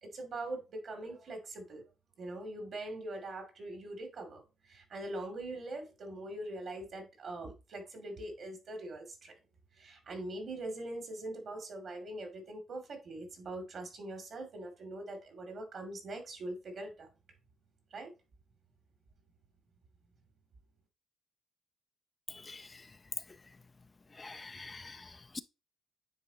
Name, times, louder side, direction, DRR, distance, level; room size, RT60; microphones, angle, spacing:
voice 1, 0.0-1.8 2.2-9.3 9.8-17.1 17.9-18.1, right 2 dB, 55° right, 2.6 m, -42 dB
voice 2, 22.4-22.8 24.2-25.4, left 3 dB, 25° left, 0.4 m, -46 dB
9.3 x 3.8 x 2.8 m
cardioid pair, 90°, 0 cm